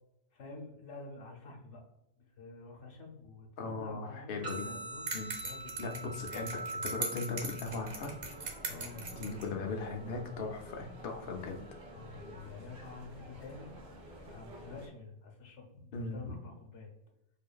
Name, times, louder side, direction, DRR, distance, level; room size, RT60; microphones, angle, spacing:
voice 1, 0.3-1.8 2.4-5.1 5.4-6.0 8.7-9.8 11.9-13.8 14.1-16.9, left 3 dB, 85° left, 1 dB, 1.1 m, -49 dB
voice 2, 3.6-4.7 5.1-5.3 5.8-8.2 9.1-11.5 15.9-16.4, left 3 dB, 60° left, 2 dB, 0.8 m, -38 dB
sound 1, 4.4-12.4, right 2 dB, 35° right, 1.2 m, -46 dB
sound 2, 5.1-9.5, right 4 dB, 75° right, 1.2 m, -40 dB
sound 3, 7.6-14.9, right 1 dB, 55° right, 0.8 m, -50 dB
4.7 x 2.6 x 2.3 m, 0.88 s
omnidirectional pair, 1.2 m